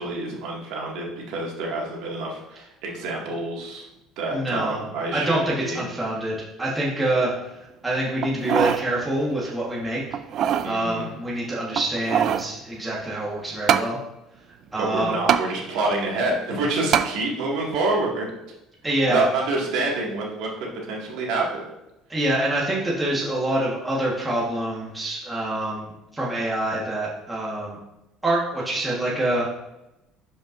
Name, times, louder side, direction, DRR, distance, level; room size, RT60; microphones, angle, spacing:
voice 1, 0.0-3.9 4.2-5.8 10.6-11.1 14.8-18.3 19.1-21.6, right 2 dB, 65° right, -2 dB, 1.9 m, -27 dB
voice 2, 4.3-4.8 5.1-7.5 7.8-10.0 10.6-14.0 14.7-15.2 18.8-19.2 22.1-27.8 28.2-29.6, right 1 dB, 10° right, -6 dB, 1.3 m, -26 dB
sound 1, 8.2-8.9 9.3-9.4 10.1-10.7 11.7-12.5 13.7-13.9 15.3-15.5 16.9-17.1 17.7-17.8, right 9 dB, 40° right, 0.3 m, -22 dB
11.0 x 5.3 x 2.5 m, 0.93 s
cardioid pair, 175°, 0 cm